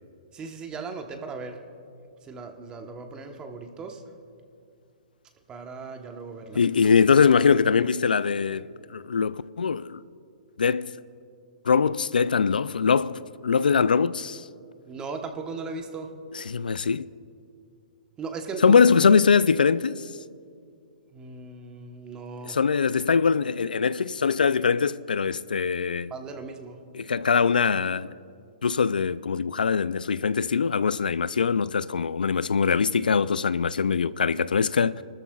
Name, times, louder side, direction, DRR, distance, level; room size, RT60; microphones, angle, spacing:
voice 1, 0.3-1.6 2.2-4.0 5.5-6.6 14.9-16.1 18.2-18.8 21.1-22.6 26.1-26.8, right 4 dB, 20° right, 1.1 m, -37 dB
voice 2, 6.5-10.0 10.6-10.9 11.7-14.5 16.3-17.1 18.6-20.1 22.4-26.1 26.9-28.1 28.6-35.0, left 6 dB, 90° left, 0.3 m, -22 dB
30.0 x 13.0 x 2.4 m
hypercardioid pair, 135°, 5 cm